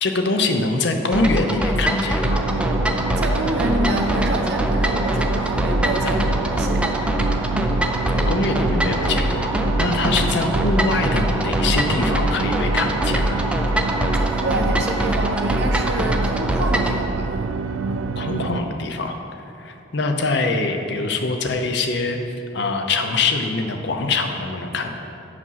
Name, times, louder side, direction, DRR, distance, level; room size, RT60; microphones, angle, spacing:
voice 1, 0.0-2.4 8.2-9.5 9.8-13.4 18.2-19.2 19.6-22.2 22.5-25.0, left 3 dB, 60° left, 5 dB, 0.6 m, -23 dB
sound 1, 1.1-17.0, right 1 dB, 5° right, 0.3 m, -23 dB
sound 2, 2.2-18.6, right 4 dB, 90° right, 0.4 m, -28 dB
voice 2, 3.2-6.9 14.1-17.3, right 1 dB, 55° right, 3 dB, 0.8 m, -27 dB
8.0 x 5.0 x 5.7 m, 2.8 s
head